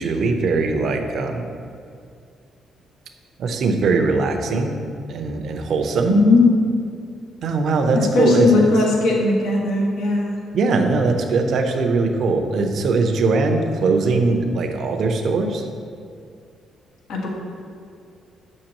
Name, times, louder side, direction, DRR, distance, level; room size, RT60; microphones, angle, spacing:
voice 1, 0.0-1.5 3.4-4.7 5.1-6.1 7.4-8.7 10.5-15.7, right 3 dB, 65° right, 5 dB, 0.8 m, -20 dB
voice 2, 6.1-6.4 8.1-10.4 17.1-17.3, left 3 dB, 85° left, -3 dB, 1.7 m, -17 dB
7.8 x 6.5 x 3.0 m, 2.4 s
cardioid pair, 90°, 0 cm